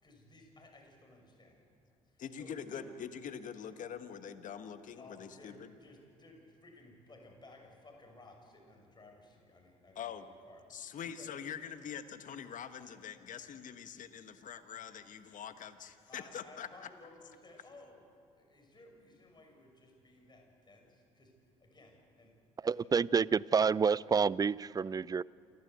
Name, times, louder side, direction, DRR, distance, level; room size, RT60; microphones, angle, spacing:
voice 1, 0.0-1.6 2.0-2.9 5.0-10.6 11.0-11.3 16.1-18.1 18.4-22.4 22.7-22.9, left 2 dB, 25° left, 2 dB, 6.3 m, -57 dB
voice 2, 2.2-5.7 9.9-10.3 10.7-16.7, left 8 dB, 50° left, 10 dB, 1.3 m, -44 dB
voice 3, 22.6-25.2, right 6 dB, 20° right, 22 dB, 0.4 m, -29 dB
28.0 x 13.0 x 8.1 m, 2.4 s
hypercardioid pair, 55°, 17 cm